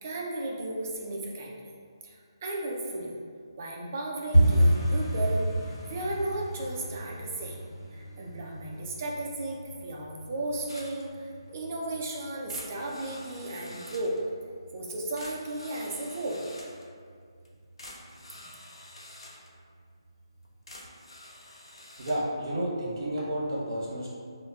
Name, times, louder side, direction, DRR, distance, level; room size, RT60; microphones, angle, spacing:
voice 1, 0.0-1.5 2.0-2.2 2.4-3.1 3.6-7.6 7.9-14.2 14.7-16.4, right 2 dB, 25° right, -2 dB, 0.4 m, -34 dB
sound 1, 4.3-15.1 15.3-16.0 16.3-16.6 16.8-17.2 17.5-17.6 18.1-18.6 19.0-19.1 19.6-19.7, right 1 dB, 40° left, 1.2 m, -30 dB
sound 2, 10.7-11.1 11.5-11.6 12.0-12.1 12.5-14.2 14.9-15.0 15.2-16.9 17.4-17.5 17.8-19.5 20.4-22.2, left 1 dB, 80° left, 0.6 m, -48 dB
voice 2, 22.0-24.1, right 1 dB, 50° right, -6 dB, 0.9 m, -31 dB
4.8 x 2.1 x 2.3 m, 2.1 s
hypercardioid pair, 170°, 3 cm